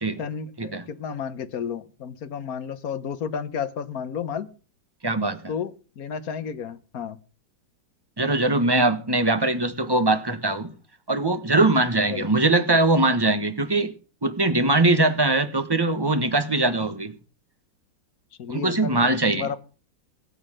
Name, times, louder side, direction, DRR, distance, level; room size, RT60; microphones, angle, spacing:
voice 1, 0.2-4.5 5.5-7.2 12.1-12.3 18.4-19.6, left 7 dB, 60° left, 13 dB, 1.5 m, -32 dB
voice 2, 5.0-5.4 8.2-10.7 11.1-13.9 14.2-17.1 18.5-19.6, right 2 dB, 15° right, 9 dB, 1.1 m, -21 dB
18.0 x 8.0 x 6.5 m, 0.37 s
omnidirectional pair, 1.9 m